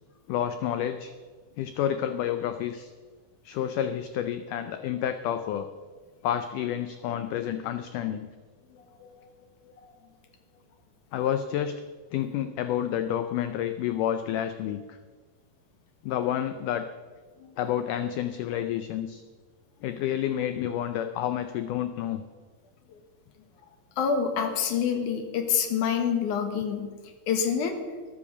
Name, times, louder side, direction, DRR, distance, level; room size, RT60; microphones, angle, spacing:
voice 1, 0.3-1.1 1.6-2.9 3.4-5.7 6.2-8.3 11.1-11.7 12.1-15.0 16.0-16.9 17.6-19.2 19.8-22.2, left 10 dB, 85° left, 9 dB, 1.8 m, -29 dB
voice 2, 8.8-9.3 9.8-9.9 17.4-17.5 24.0-26.9 27.3-27.8, left 7 dB, 65° left, 6 dB, 2.5 m, -27 dB
13.5 x 10.5 x 7.0 m, 1.4 s
omnidirectional pair, 4.4 m